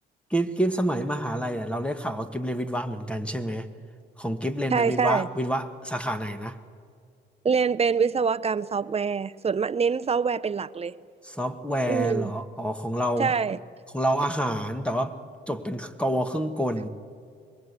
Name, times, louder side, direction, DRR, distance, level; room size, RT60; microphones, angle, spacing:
voice 1, 0.3-3.7 4.2-6.6 11.2-13.3 13.9-15.1 15.5-16.9, equal, 5° left, 1.5 m, -28 dB
voice 2, 4.7-5.3 7.4-11.0 11.9-12.3 13.2-13.6, right 5 dB, 30° right, 0.6 m, -25 dB
25.5 x 21.5 x 8.2 m
cardioid pair, 90°, 20 cm